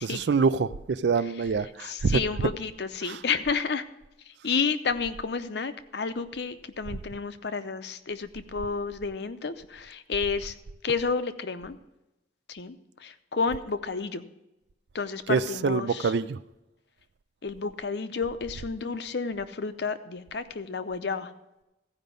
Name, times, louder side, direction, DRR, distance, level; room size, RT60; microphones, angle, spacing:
voice 1, 0.0-2.5 3.0-3.2 15.3-16.4, right 5 dB, 65° right, 0.4 m, -26 dB
voice 2, 1.8-3.8 4.4-10.5 10.8-11.8 12.5-12.8 13.0-14.2 14.9-16.1 17.4-21.3, left 5 dB, 65° left, 0.6 m, -31 dB
14.5 x 5.2 x 6.8 m
head